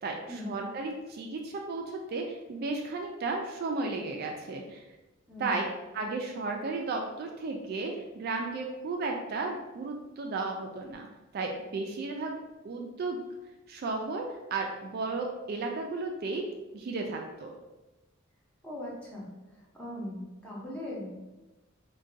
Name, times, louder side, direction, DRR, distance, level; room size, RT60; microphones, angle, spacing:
voice 1, 0.0-4.8 5.4-5.6 5.9-11.1 11.3-12.4 12.6-13.2 13.7-16.5 16.7-17.5, right 3 dB, 50° right, 2 dB, 0.3 m, -34 dB
voice 2, 18.6-19.3 19.7-21.1, left 1 dB, 5° left, -5 dB, 0.7 m, -39 dB
2.5 x 2.2 x 3.8 m, 1.1 s
head